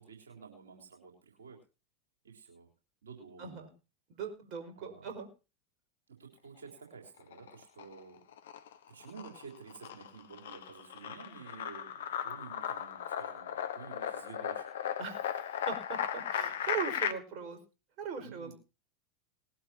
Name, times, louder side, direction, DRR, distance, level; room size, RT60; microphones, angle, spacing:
voice 1, 0.0-1.6 2.2-2.7 3.0-3.6 4.8-5.1 6.1-8.2 8.9-14.7 18.2-18.5, right 5 dB, 80° right, 1 dB, 3.8 m, -51 dB
voice 2, 3.4-3.7 4.2-5.3 15.0-17.6 18.0-18.5, right 6 dB, 45° right, 4 dB, 5.1 m, -40 dB
sound 1, 7.2-8.0 8.3-17.1, left 9 dB, 70° left, 1.3 m, -37 dB
20.5 x 12.0 x 2.8 m, 0.31 s
figure-of-eight pair, 85°, 0 cm